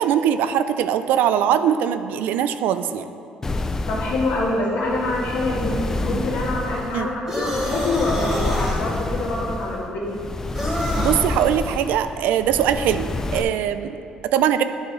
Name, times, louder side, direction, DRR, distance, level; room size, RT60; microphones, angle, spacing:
voice 1, 0.0-3.0 6.9-7.1 11.0-14.6, right 9 dB, 85° right, 11 dB, 0.3 m, -21 dB
sound 1, 3.4-13.4, left 2 dB, 15° left, 0.3 m, -28 dB
voice 2, 3.9-5.7 6.0-10.2, left 2 dB, 75° left, -7 dB, 1.6 m, -25 dB
sound 2, 7.3-8.8 10.5-11.2, equal, 10° right, 1.8 m, -27 dB
10.0 x 4.8 x 4.0 m, 2.5 s
cardioid pair, 130°, 3 cm